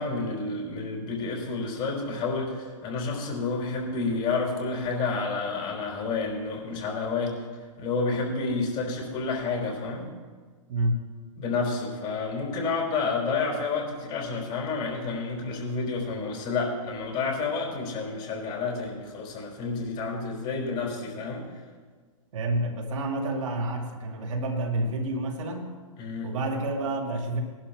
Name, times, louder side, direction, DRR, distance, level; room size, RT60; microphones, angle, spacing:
voice 1, 0.0-7.4 7.8-10.1 11.4-21.4 26.0-26.3, left 4 dB, 35° left, -1 dB, 4.9 m, -30 dB
voice 2, 10.7-11.0 22.3-25.7 26.2-27.4, right 1 dB, 70° right, 0 dB, 2.6 m, -29 dB
19.5 x 11.5 x 3.6 m, 1.5 s
hypercardioid pair, 125°, 17 cm